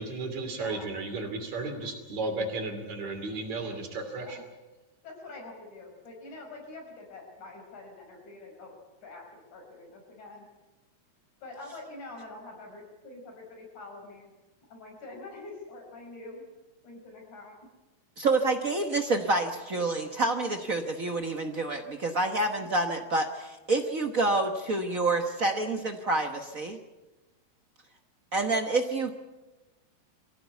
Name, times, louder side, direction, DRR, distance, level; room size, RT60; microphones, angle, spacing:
voice 1, 0.0-4.4, right 3 dB, 70° right, 5 dB, 4.1 m, -34 dB
voice 2, 0.5-0.9 4.2-4.4 5.0-8.7 9.0-10.5 11.4-14.3 14.7-16.4 16.8-17.5, left 2 dB, 90° left, 1 dB, 6.9 m, -45 dB
voice 3, 18.2-26.8 28.3-29.1, right 2 dB, 50° right, 5 dB, 0.9 m, -28 dB
24.0 x 16.0 x 8.3 m, 1.1 s
omnidirectional pair, 3.3 m